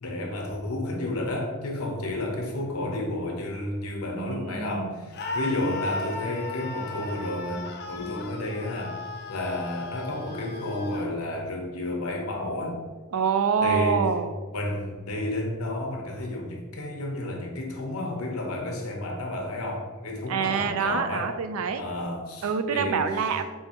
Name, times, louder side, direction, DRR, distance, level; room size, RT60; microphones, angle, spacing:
voice 1, 0.0-9.0 9.3-12.7 13.6-14.1 14.5-21.3 21.8-23.3, left 1 dB, 80° left, 1 dB, 0.8 m, -31 dB
voice 2, 4.1-5.0 13.1-14.3 20.3-21.8 22.4-23.4, right 6 dB, 70° right, 9 dB, 0.4 m, -26 dB
Screaming, 5.1-11.1, left 3 dB, 50° left, 0.5 m, -36 dB
4.2 x 3.6 x 2.9 m, 1.3 s
head